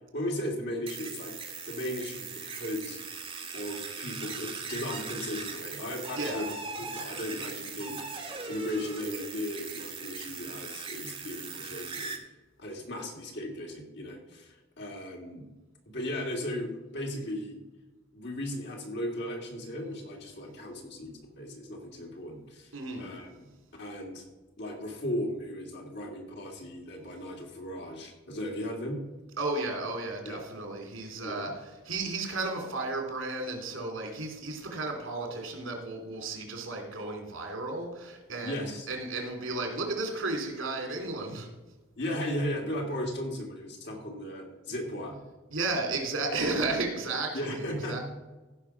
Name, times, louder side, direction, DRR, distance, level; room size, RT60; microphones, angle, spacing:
voice 1, 0.1-1.4 1.7-3.0 3.5-6.5 6.8-12.1 12.6-15.5 15.9-17.6 18.1-22.7 23.0-23.5 23.8-24.2 24.6-29.0 30.2-30.4 31.2-31.5 38.4-38.9 42.0-45.2 47.3-48.0, left 1 dB, 60° left, 0 dB, 2.6 m, -36 dB
sound 1, 0.9-12.2, right 4 dB, 30° right, 1.5 m, -39 dB
voice 2, 6.1-6.4 22.7-23.1 29.4-41.5 45.5-48.0, right 3 dB, 90° right, 2 dB, 3.0 m, -33 dB
15.5 x 5.2 x 5.9 m, 1.2 s
head